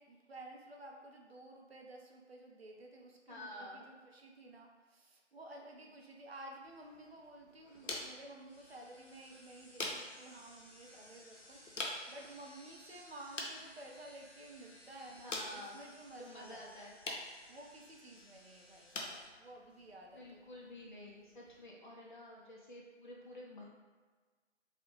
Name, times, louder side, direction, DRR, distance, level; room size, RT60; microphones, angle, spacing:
voice 1, 0.0-16.7 17.5-20.4, right 1 dB, 60° right, 0 dB, 0.4 m, -53 dB
voice 2, 3.3-3.9 10.9-11.2 15.2-15.8 16.2-17.0 20.1-23.6, left 1 dB, 40° left, -5 dB, 0.5 m, -50 dB
sound 1, 6.6-21.7, left 2 dB, 85° left, 0.6 m, -48 dB
sound 2, 7.7-19.2, left 1 dB, 20° left, 0.9 m, -60 dB
2.4 x 2.0 x 2.9 m, 1.4 s
figure-of-eight pair, 165°, 36 cm